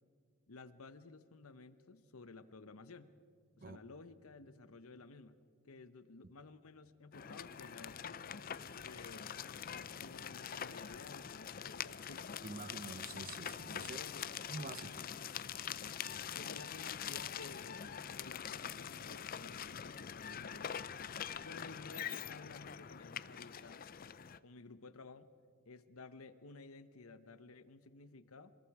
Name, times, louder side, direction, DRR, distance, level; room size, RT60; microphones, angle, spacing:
voice 1, 0.5-3.2 3.6-5.4 5.6-8.2 8.8-9.3 9.7-12.3 13.8-14.3 16.3-20.7 21.4-23.8 24.4-25.3 25.7-28.5, left 3 dB, 85° left, 12 dB, 1.0 m, -54 dB
sound 1, 7.1-24.4, left 8 dB, 40° left, 0.5 m, -44 dB
voice 2, 12.4-14.0 14.5-15.0, right 3 dB, 40° right, 14 dB, 0.7 m, -47 dB
26.5 x 21.0 x 4.9 m, 2.2 s
head